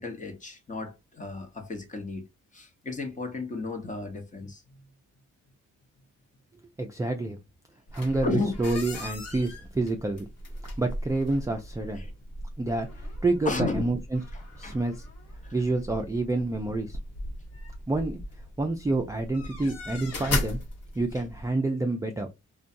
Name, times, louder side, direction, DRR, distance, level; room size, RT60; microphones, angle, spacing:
voice 1, 0.0-2.3 2.5-4.8 8.2-8.5 12.0-12.1 13.4-13.8 14.3-14.8 15.4-15.5, left 3 dB, 25° left, 0.9 m, -33 dB
voice 2, 6.8-7.4 7.9-8.3 8.6-10.3 10.8-12.1 12.6-14.2 14.6-15.0 15.5-17.0 17.9-18.2 18.6-20.6 21.0-22.3, right 2 dB, 10° right, 0.3 m, -28 dB
sound 1, 7.9-21.5, left 1 dB, 55° left, 1.1 m, -38 dB
2.6 x 2.2 x 2.5 m
cardioid pair, 90°, 30 cm